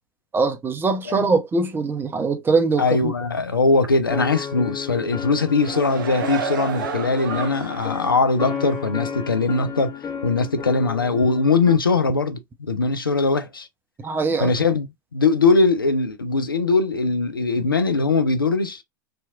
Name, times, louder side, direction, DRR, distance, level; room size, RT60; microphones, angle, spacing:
voice 1, 0.3-3.1 14.0-14.5, right 4 dB, 20° right, 0.6 m, -22 dB
voice 2, 2.8-9.9 10.2-13.7 14.4-18.8, left 3 dB, 90° left, 0.4 m, -21 dB
sound 1, 4.1-11.7, left 7 dB, 30° left, 1.2 m, -33 dB
sound 2, 5.3-8.0 8.4-8.6, right 7 dB, 70° right, 0.6 m, -30 dB
2.7 x 2.4 x 2.4 m
figure-of-eight pair, 85°, 11 cm